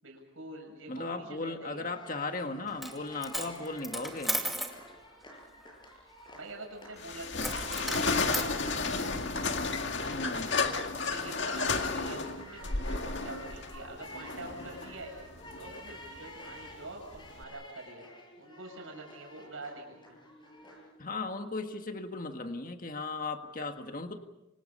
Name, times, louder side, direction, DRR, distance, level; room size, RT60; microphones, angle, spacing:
voice 1, 0.0-1.9 6.3-9.3 11.1-15.1 15.6-18.1 18.4-20.2, right 2 dB, 70° right, 0 dB, 7.8 m, -46 dB
voice 2, 0.9-4.4 10.1-10.6 21.0-24.2, left 3 dB, 40° left, 6 dB, 1.7 m, -37 dB
sound 1, 1.9-21.0, left 1 dB, 20° left, 6.9 m, -52 dB
Coin (dropping), 2.7-3.0 3.2-4.8 7.4-8.5, equal, ahead, 2.3 m, -35 dB
sound 2, 7.0-17.4, left 4 dB, 55° left, 2.2 m, -33 dB
29.5 x 26.0 x 5.6 m, 0.95 s
head